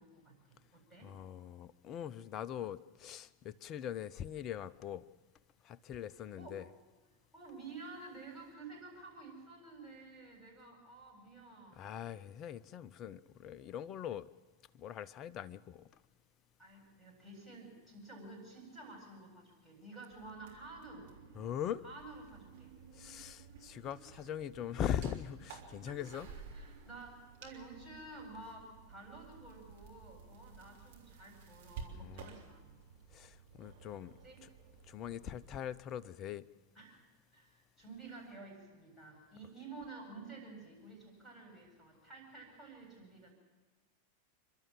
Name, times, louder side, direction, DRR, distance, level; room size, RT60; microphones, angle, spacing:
voice 1, 0.0-1.1 6.4-6.6 7.3-11.9 16.6-21.1 21.8-22.8 25.8-26.2 26.5-32.6 34.2-34.4 36.7-37.0 37.3-43.3, right 3 dB, 5° right, 8.0 m, -51 dB
voice 2, 1.0-5.0 5.6-6.6 11.8-14.3 14.7-15.9 21.3-21.8 22.9-26.3 31.9-32.3 33.1-34.1 34.4-34.5 34.9-36.4, left 9 dB, 35° left, 0.6 m, -41 dB
sound 1, 20.1-35.7, right 6 dB, 50° right, 3.4 m, -54 dB
29.5 x 12.5 x 7.5 m
figure-of-eight pair, 90°, 0 cm